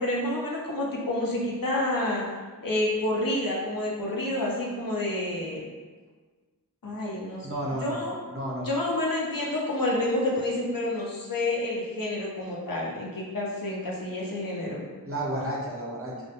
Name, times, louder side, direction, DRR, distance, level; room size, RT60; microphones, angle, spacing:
voice 1, 0.0-2.3 2.6-5.6 6.8-7.5 7.8-8.1 8.7-14.9, left 1 dB, 60° left, -3 dB, 0.6 m, -29 dB
voice 2, 7.4-8.0 8.3-8.7 15.0-16.3, right 1 dB, 35° right, -5 dB, 0.6 m, -32 dB
2.2 x 2.1 x 2.7 m, 1.4 s
wide cardioid pair, 45°, 38 cm